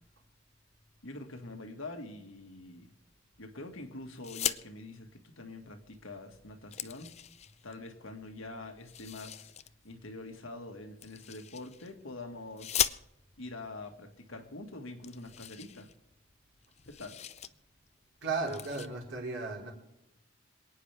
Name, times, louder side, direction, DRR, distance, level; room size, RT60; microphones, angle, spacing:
voice 1, 1.0-2.9 3.4-7.1 7.6-9.5 9.8-12.8 13.4-15.9 16.9-17.2, left 2 dB, 90° left, 4 dB, 1.9 m, -45 dB
sound 1, 4.2-4.6 5.9-6.0 6.4-7.7 8.8-9.7 11.0-11.9 12.6-13.4 14.3-14.4 14.6-14.7 15.0-16.3 16.6-17.5 17.9-18.1 18.4-18.9, left 10 dB, 30° left, 0.4 m, -37 dB
voice 2, 18.2-19.7, right 3 dB, 70° right, -1 dB, 4.3 m, -35 dB
27.5 x 9.6 x 3.5 m, 0.92 s
head